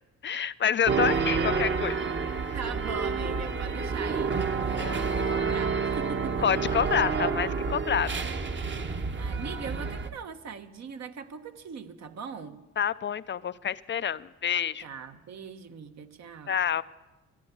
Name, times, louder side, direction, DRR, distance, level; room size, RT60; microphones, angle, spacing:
voice 1, 0.2-2.0 2.4-2.6 4.8-4.9 6.4-8.1 12.8-14.8 16.5-16.8, left 8 dB, 40° left, 15 dB, 0.4 m, -28 dB
sound 1, 0.9-10.1, right 5 dB, 40° right, 1.1 m, -29 dB
voice 2, 2.5-6.4 8.7-12.6 14.8-16.6, right 6 dB, 60° right, 8 dB, 1.2 m, -41 dB
13.5 x 10.0 x 9.6 m, 1.1 s
cardioid pair, 90°, 30 cm